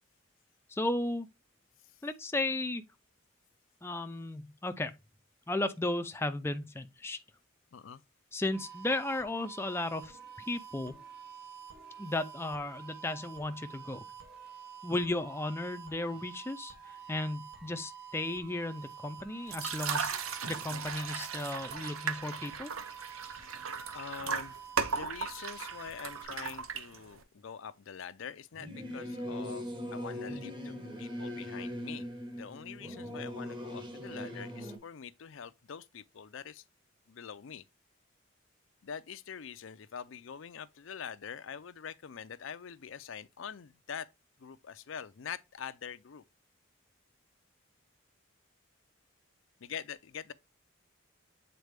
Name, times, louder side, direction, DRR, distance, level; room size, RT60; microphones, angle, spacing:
voice 1, 0.7-1.3 2.0-2.8 3.8-4.9 5.5-7.2 8.3-10.9 12.0-14.0 14.8-16.7 17.1-22.7, left 2 dB, 10° left, 0.5 m, -35 dB
voice 2, 7.7-8.0 23.9-24.6 24.9-36.6 37.1-37.6 38.8-44.1 44.4-46.2 49.6-50.3, left 7 dB, 70° left, 0.5 m, -44 dB
sound 1, 8.5-26.2, right 7 dB, 50° right, 2.2 m, -49 dB
sound 2, 19.5-27.2, right 6 dB, 90° right, 0.8 m, -37 dB
Singing / Musical instrument, 28.5-34.8, equal, 25° right, 1.2 m, -40 dB
8.0 x 4.1 x 3.4 m
head